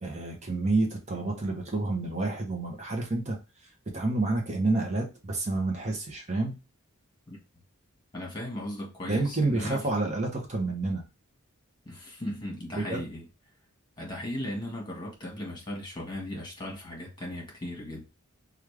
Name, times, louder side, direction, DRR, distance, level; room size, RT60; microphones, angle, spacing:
voice 1, 0.0-3.4 3.9-6.6 9.0-11.0 12.7-13.0, right 2 dB, 35° right, 0.9 m, -29 dB
voice 2, 8.1-9.8 11.8-13.2 14.0-18.1, left 1 dB, 20° left, 1.4 m, -37 dB
3.2 x 2.5 x 3.2 m
head